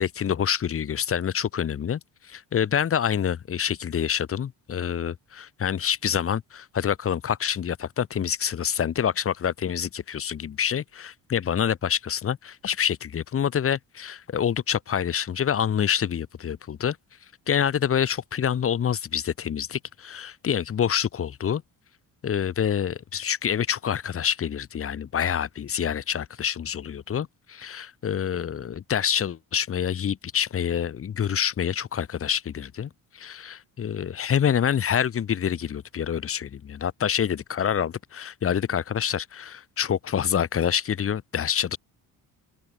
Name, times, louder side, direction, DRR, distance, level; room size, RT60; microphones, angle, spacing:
voice 1, 0.0-2.0 2.3-17.0 17.5-21.6 22.2-41.8, left 8 dB, 40° left, 1.9 m, -27 dB
open air
cardioid pair, 140°, 34 cm